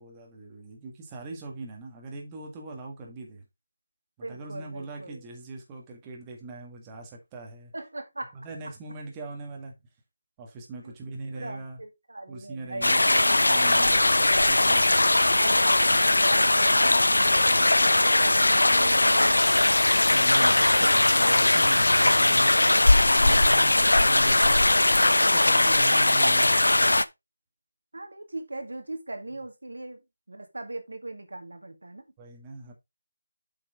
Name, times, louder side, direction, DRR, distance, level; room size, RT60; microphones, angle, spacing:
voice 1, 0.0-3.4 4.2-7.7 8.3-9.7 10.4-11.8 12.3-14.9 20.1-26.5 32.2-32.7, right 3 dB, 15° right, 1.8 m, -41 dB
voice 2, 4.2-5.2 7.7-8.3 10.8-10.9 11.3-13.1 15.4-15.8 16.2-19.8 20.3-21.4 25.5-26.2 27.9-30.0 30.3-32.0, right 2 dB, 75° right, 2.1 m, -39 dB
sound 1, 12.8-27.1, left 2 dB, 80° left, 0.6 m, -20 dB
7.8 x 6.1 x 3.6 m
figure-of-eight pair, 160°, 0 cm